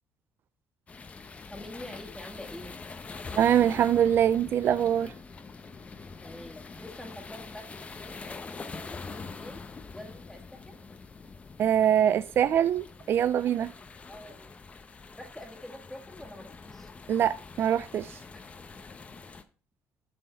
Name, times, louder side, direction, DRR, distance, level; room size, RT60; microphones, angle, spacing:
sound 1, 0.9-19.4, left 4 dB, 30° left, 0.8 m, -44 dB
voice 1, 1.5-2.8 6.2-9.6 9.9-11.0 14.1-14.5 15.1-16.9, left 1 dB, 5° left, 1.8 m, -46 dB
voice 2, 3.4-5.1 11.6-13.7 17.1-18.2, right 9 dB, 50° right, 0.3 m, -24 dB
7.7 x 6.2 x 4.4 m
cardioid pair, 100°, 5 cm